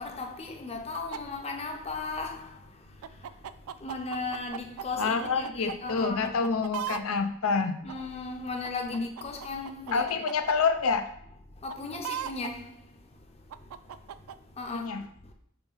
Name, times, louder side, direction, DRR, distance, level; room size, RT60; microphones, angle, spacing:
voice 1, 0.0-2.7 3.1-3.3 3.8-6.4 7.8-10.3 11.6-12.8 14.6-14.9, left 3 dB, 30° left, 0.7 m, -36 dB
sound 1, 0.9-1.2 3.0-5.8 6.0-7.0 7.9-8.0 8.6-10.5 11.7-12.5 13.5-14.4, right 9 dB, 85° right, 0.3 m, -37 dB
voice 2, 5.0-7.7 8.9-9.1 9.9-11.1 14.7-15.0, left 5 dB, 85° left, 0.6 m, -27 dB
4.4 x 3.9 x 5.6 m
head